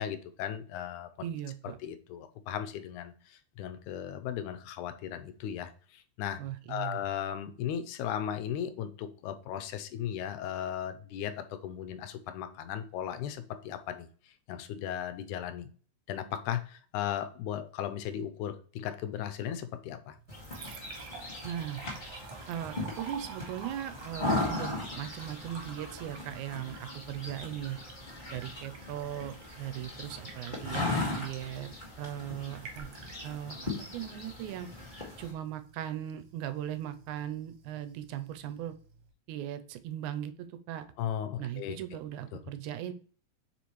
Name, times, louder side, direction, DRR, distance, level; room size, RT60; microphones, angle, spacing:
voice 1, 0.0-1.1 1.8-6.4 6.7-14.1 14.5-15.7 16.1-20.2 41.0-41.8, left 10 dB, 85° left, 10 dB, 2.0 m, -36 dB
voice 2, 1.2-1.8 6.4-7.0 21.4-21.8 22.5-27.8 28.3-31.7 32.0-32.9 33.2-34.7 35.2-38.8 39.3-40.9 41.4-42.9, right 11 dB, 85° right, 10 dB, 2.0 m, -38 dB
Liquid, 20.1-39.1, right 5 dB, 65° right, 2.1 m, -50 dB
sound 1, 20.3-35.3, left 2 dB, 25° left, 1.3 m, -38 dB
7.0 x 4.8 x 3.1 m, 0.42 s
omnidirectional pair, 3.4 m